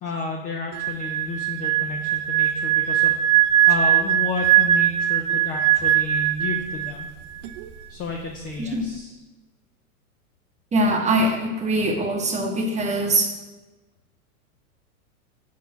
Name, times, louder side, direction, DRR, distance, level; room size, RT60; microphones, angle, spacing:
voice 1, 0.0-3.1 3.7-7.1 7.9-9.2, left 3 dB, 20° left, 1 dB, 0.4 m, -31 dB
sound 1, 0.7-7.1 7.4-7.6, right 12 dB, 55° right, 0.6 m, -20 dB
voice 2, 10.7-13.3, right 1 dB, 15° right, 3 dB, 0.9 m, -22 dB
5.5 x 4.6 x 5.7 m, 1.1 s
hypercardioid pair, 115°, 43 cm